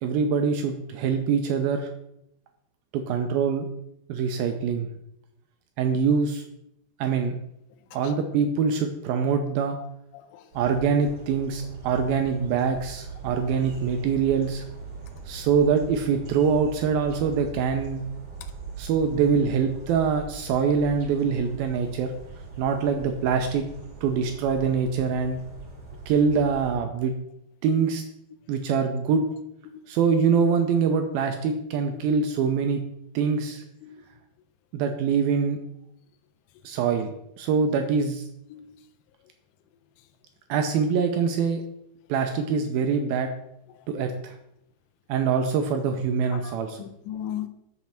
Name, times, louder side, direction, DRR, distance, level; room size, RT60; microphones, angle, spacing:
voice 1, 0.0-1.9 2.9-3.7 4.1-4.9 5.8-6.4 7.0-7.4 7.9-9.8 10.6-14.6 15.3-18.0 18.8-22.1 22.6-23.7 24.0-25.4 26.1-27.1 27.6-28.0 28.5-29.2 29.9-32.8 33.1-33.6 34.7-35.6 36.6-38.3 40.5-41.6 42.1-43.3 43.9-44.4 45.1-46.8, right 6 dB, 85° right, 2.1 m, -24 dB
voice 2, 10.1-10.5 11.5-11.6 29.7-30.0 31.9-32.0 33.8-34.0 38.5-38.8 43.7-43.9 46.3-47.5, left 11 dB, 90° left, 2.9 m, -38 dB
sound 1, 10.5-26.7, right 4 dB, 45° right, 2.7 m, -40 dB
7.5 x 7.1 x 5.6 m
omnidirectional pair, 5.0 m